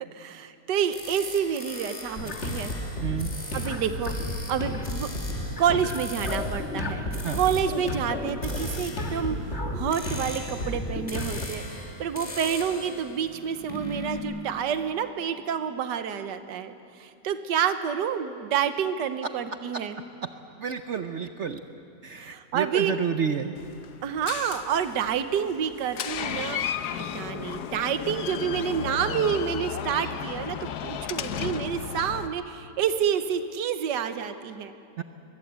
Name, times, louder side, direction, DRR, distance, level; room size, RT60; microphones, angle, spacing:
voice 1, 0.1-2.7 3.5-4.1 4.5-5.1 5.6-7.0 7.3-20.0 22.2-22.9 24.0-26.6 27.1-34.7, right 8 dB, 80° right, 9 dB, 1.6 m, -28 dB
sound 1, 0.9-14.2, left 1 dB, 20° left, 2.5 m, -41 dB
sound 2, 2.1-11.5, left 1 dB, 40° left, 1.9 m, -32 dB
voice 2, 20.6-21.6 22.0-23.6 35.0-35.1, right 7 dB, 55° right, 8 dB, 0.8 m, -30 dB
Door, 23.6-32.3, left 9 dB, 70° left, 1.3 m, -34 dB
23.0 x 20.5 x 8.1 m, 2.6 s
omnidirectional pair, 1.9 m